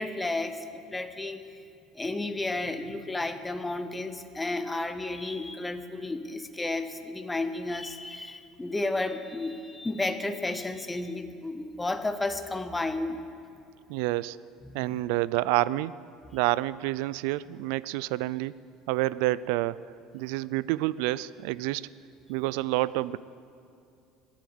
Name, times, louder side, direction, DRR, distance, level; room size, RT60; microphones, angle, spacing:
voice 1, 0.0-1.6 1.9-13.2 14.6-15.0, left 2 dB, 10° left, 9 dB, 0.7 m, -32 dB
voice 2, 13.9-14.4 14.7-16.0 16.3-18.6 18.9-19.8 20.1-21.9 22.3-23.2, right 17 dB, 80° right, 19 dB, 0.4 m, -28 dB
21.5 x 8.6 x 7.9 m, 2.4 s
cardioid pair, 165°, 0 cm